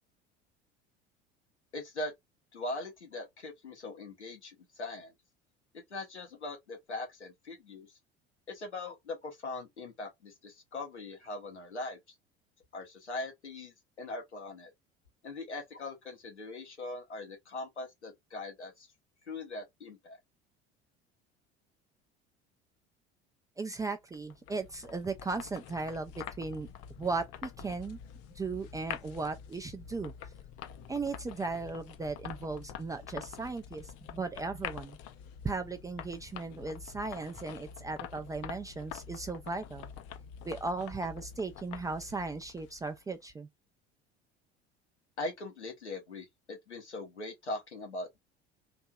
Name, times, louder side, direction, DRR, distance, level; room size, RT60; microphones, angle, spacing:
voice 1, 1.7-2.1 2.5-5.1 5.7-7.9 8.5-12.0 12.7-14.7 15.2-18.9 19.3-20.2 45.2-48.2, left 2 dB, 85° left, 1.0 m, -41 dB
voice 2, 23.6-26.7 27.0-28.0 28.4-30.1 30.9-35.0 35.4-39.9 40.5-43.5, right 3 dB, 10° right, 0.3 m, -37 dB
sound 1, 24.1-43.2, left 9 dB, 50° left, 0.5 m, -46 dB
3.2 x 2.6 x 2.2 m
figure-of-eight pair, 65°, 33 cm